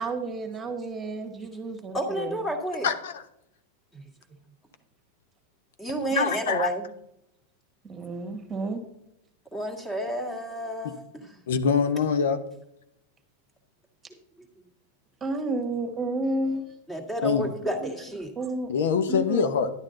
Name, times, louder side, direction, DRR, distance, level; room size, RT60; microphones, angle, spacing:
voice 1, 0.0-2.4 6.1-6.2 7.8-8.8 15.2-16.6 17.8-17.9 18.3-18.7 19.1-19.4, right 2 dB, 20° right, 5 dB, 1.6 m, -31 dB
voice 2, 1.9-2.9 3.9-4.0 5.8-6.8 9.5-11.4 14.4-14.5 16.9-18.3, right 1 dB, 10° left, 3 dB, 1.9 m, -31 dB
voice 3, 2.8-3.2 6.1-6.7 10.8-10.9 11.5-12.4 17.2-17.5 18.7-19.7, left 6 dB, 80° left, 10 dB, 1.0 m, -24 dB
11.0 x 8.9 x 3.9 m, 0.78 s
supercardioid pair, 145°, 0 cm